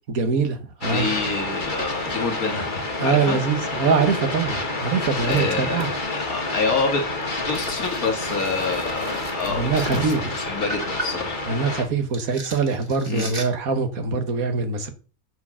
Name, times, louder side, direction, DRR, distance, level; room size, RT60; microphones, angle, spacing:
voice 1, 0.1-1.1 3.0-5.9 9.5-10.4 11.4-14.9, right 5 dB, 70° right, 1.7 m, -23 dB
voice 2, 0.8-2.7 3.0-3.4 5.2-5.9 6.1-7.0 7.4-11.4 13.1-13.3, left 4 dB, 75° left, 2.5 m, -27 dB
sound 1, 0.8-11.8, left 2 dB, 35° left, 1.9 m, -29 dB
sound 2, 1.0-1.3 1.8-2.2 3.0-3.1 3.4-11.8 12.1-13.4, right 2 dB, 35° right, 2.0 m, -38 dB
8.6 x 4.7 x 7.3 m
omnidirectional pair, 1.5 m